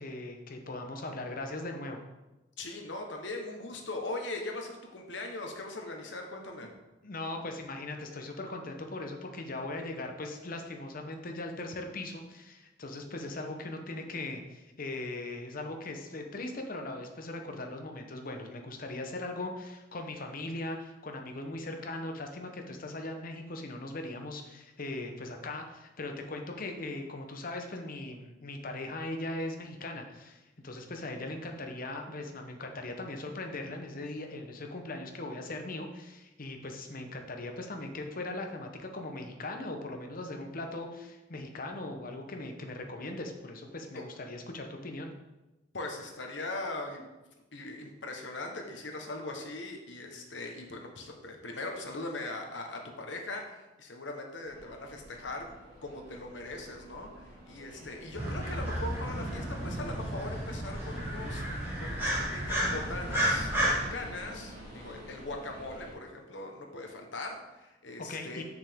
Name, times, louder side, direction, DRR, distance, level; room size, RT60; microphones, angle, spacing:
voice 1, 0.0-2.0 7.0-45.1 68.1-68.4, left 2 dB, 50° left, 4 dB, 0.9 m, -39 dB
voice 2, 2.6-6.7 43.9-44.0 45.7-47.1 47.5-55.5 55.8-68.4, left 2 dB, 70° left, 3 dB, 1.2 m, -40 dB
sound 1, 54.5-65.9, equal, 60° right, 2.4 m, -48 dB
sound 2, 58.1-63.9, equal, 15° right, 2.6 m, -32 dB
6.9 x 6.5 x 3.6 m, 1.0 s
head